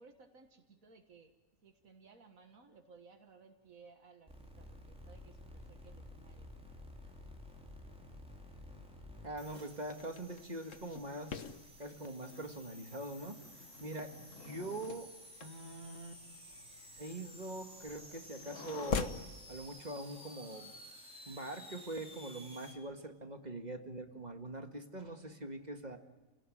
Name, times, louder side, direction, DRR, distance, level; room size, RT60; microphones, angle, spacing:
voice 1, 0.0-1.3 1.6-6.5 14.3-14.6, right 4 dB, 90° right, 4 dB, 2.1 m, -60 dB
sound 1, 4.3-22.7, equal, 5° right, 4.2 m, -54 dB
voice 2, 9.2-11.4 11.8-13.4 13.8-15.1 15.4-16.1 17.0-19.2 19.5-20.7 21.3-26.0, right 1 dB, 30° right, 5 dB, 2.0 m, -43 dB
sound 2, 9.7-19.3, left 5 dB, 70° left, 1.6 m, -45 dB
29.5 x 18.5 x 9.3 m, 1.2 s
omnidirectional pair, 1.4 m